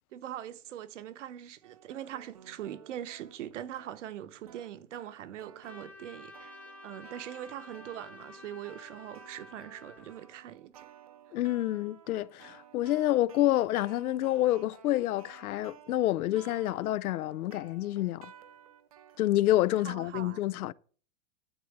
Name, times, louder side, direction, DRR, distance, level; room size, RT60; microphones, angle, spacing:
voice 1, 0.1-6.6 6.8-10.9 19.8-20.4, right 11 dB, 55° right, 1.1 m, -42 dB
sound 1, 1.6-19.6, right 9 dB, 25° right, 0.5 m, -55 dB
Trumpet, 5.6-10.3, left 2 dB, 5° left, 1.0 m, -51 dB
voice 2, 11.3-18.3 19.2-20.7, left 14 dB, 90° left, 0.6 m, -28 dB
11.5 x 4.0 x 7.9 m
supercardioid pair, 175°, 43 cm